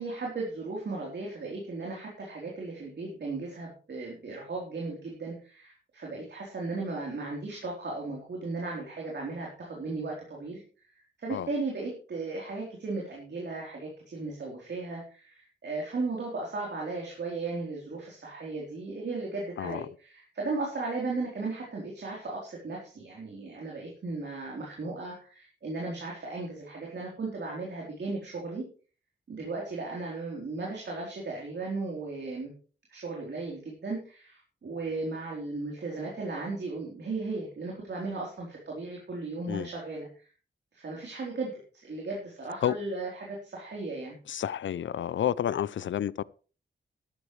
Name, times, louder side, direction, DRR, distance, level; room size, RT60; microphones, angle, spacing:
voice 1, 0.0-28.6 29.3-32.5 32.9-40.3 40.7-44.2, right 3 dB, 65° right, 3.9 m, -36 dB
voice 2, 44.3-46.2, left 10 dB, 80° left, 0.5 m, -30 dB
13.5 x 12.5 x 3.3 m
wide cardioid pair, 150°, 20 cm